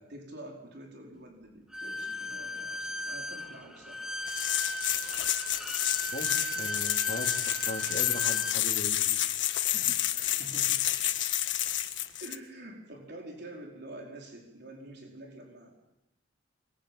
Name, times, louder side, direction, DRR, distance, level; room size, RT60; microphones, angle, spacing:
voice 1, 0.0-4.0 9.8-11.2 12.2-15.7, right 1 dB, 60° right, 0 dB, 4.8 m, -47 dB
Bowed string instrument, 1.7-8.6, equal, 5° right, 1.7 m, -37 dB
sound 1, 4.3-12.4, left 12 dB, 75° left, 1.6 m, -29 dB
voice 2, 6.5-9.0 9.6-10.0, left 2 dB, 50° left, 2 dB, 3.6 m, -39 dB
25.5 x 22.5 x 9.0 m, 0.95 s
head